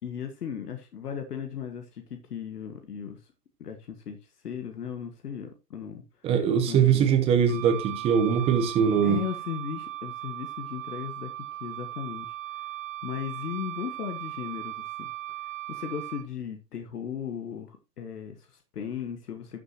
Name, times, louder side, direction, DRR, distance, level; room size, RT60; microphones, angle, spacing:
voice 1, 0.0-2.0 2.3-3.2 3.6-4.2 4.4-6.0 6.7-7.1 9.0-11.3 11.6-12.3 13.0-15.1 15.7-19.6, left 8 dB, 65° left, 1.9 m, -36 dB
voice 2, 6.2-9.2, right 7 dB, 10° right, 1.0 m, -22 dB
Wind instrument woodwind instrument, 7.5-16.3, right 14 dB, 50° right, 1.4 m, -38 dB
12.5 x 6.9 x 2.9 m
hypercardioid pair, 145°, 49 cm